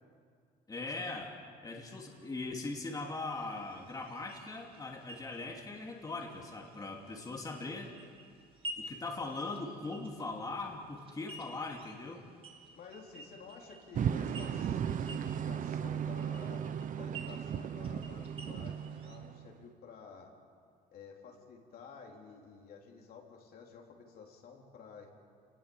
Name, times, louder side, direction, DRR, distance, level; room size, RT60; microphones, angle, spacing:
voice 1, 0.7-7.9 8.8-12.2, left 3 dB, 20° left, 0 dB, 2.8 m, -40 dB
sound 1, 3.3-19.2, right 1 dB, 35° right, 3.0 m, -52 dB
voice 2, 12.8-16.7 17.0-20.3 20.9-25.1, left 5 dB, 65° left, 0 dB, 4.1 m, -52 dB
sound 2, 14.0-19.6, right 8 dB, 50° right, 1.0 m, -36 dB
28.5 x 19.5 x 7.4 m, 2.1 s
cardioid pair, 110°, 17 cm